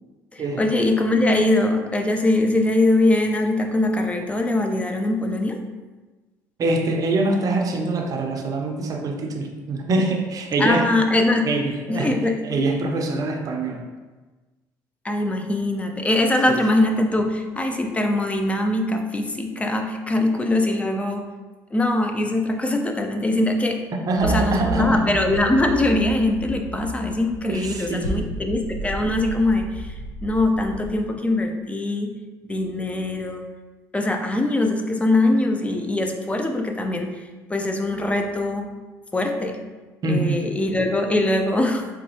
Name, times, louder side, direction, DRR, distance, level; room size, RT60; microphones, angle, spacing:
voice 1, 0.3-5.6 10.6-11.5 11.9-12.4 15.0-21.3 21.7-23.8 24.2-29.9 30.2-32.1 32.4-33.4 33.9-37.1 37.5-38.7 39.1-39.6 40.0-41.9, left 2 dB, 15° left, 4 dB, 0.4 m, -22 dB
voice 2, 6.6-10.9 11.4-12.2 12.4-13.9 16.5-16.6 24.1-25.2 27.5-28.3 40.0-40.4, right 2 dB, 45° right, 3 dB, 0.5 m, -24 dB
sound 1, 24.2-31.0, right 1 dB, 80° left, 0.9 m, -32 dB
4.0 x 2.3 x 2.7 m, 1.3 s
supercardioid pair, 70°, 8 cm